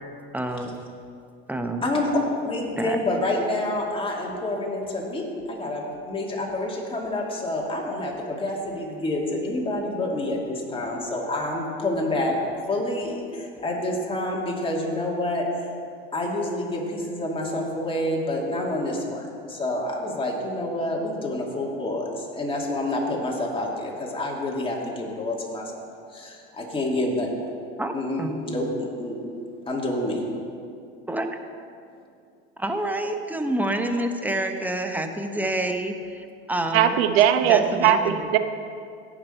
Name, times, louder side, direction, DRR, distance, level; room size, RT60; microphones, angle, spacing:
voice 1, 0.3-0.8 1.5-1.8 2.8-3.0 27.8-27.9 28.2-28.4 31.1-31.3 32.6-37.0 37.4-38.3, right 1 dB, 5° right, 5 dB, 1.0 m, -28 dB
voice 2, 2.4-12.4 12.7-15.7 16.1-19.2 19.5-25.9 26.1-27.3 27.9-29.2 29.7-30.2, left 1 dB, 15° left, -2 dB, 2.6 m, -28 dB
voice 3, 36.7-38.4, right 10 dB, 75° right, 9 dB, 0.8 m, -19 dB
17.5 x 6.2 x 4.4 m, 2.3 s
hypercardioid pair, 95°, 30 cm